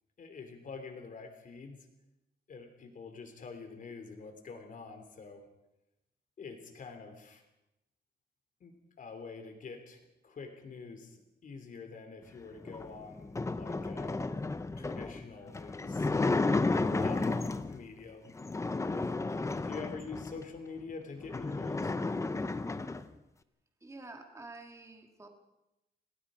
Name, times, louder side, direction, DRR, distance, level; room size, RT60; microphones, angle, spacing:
voice 1, 0.2-1.9 2.5-5.5 6.4-7.4 8.6-14.1 14.7-16.1 16.9-18.4 19.6-21.9, left 4 dB, 45° left, 6 dB, 3.2 m, -46 dB
sound 1, 12.6-17.8 18.4-20.4 20.9-21.0 21.2-23.1, left 3 dB, 15° left, 0.8 m, -32 dB
voice 2, 23.8-25.3, right 2 dB, 15° right, 3 dB, 2.1 m, -48 dB
28.5 x 18.5 x 5.1 m, 0.90 s
wide cardioid pair, 170°, 18 cm